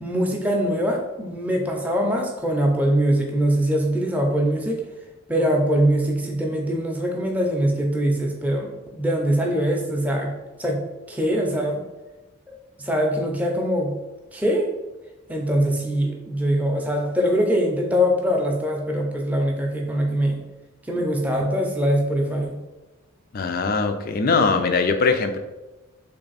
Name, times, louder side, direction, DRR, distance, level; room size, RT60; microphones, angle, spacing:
voice 1, 0.0-4.8 5.3-10.3 10.6-10.8 11.1-11.8 12.8-13.9 14.3-14.7 15.3-20.4 20.9-22.6, equal, 5° right, 0 dB, 0.5 m, -22 dB
voice 2, 23.3-25.4, left 4 dB, 45° left, 7 dB, 0.4 m, -21 dB
3.4 x 3.3 x 4.0 m, 1.1 s
head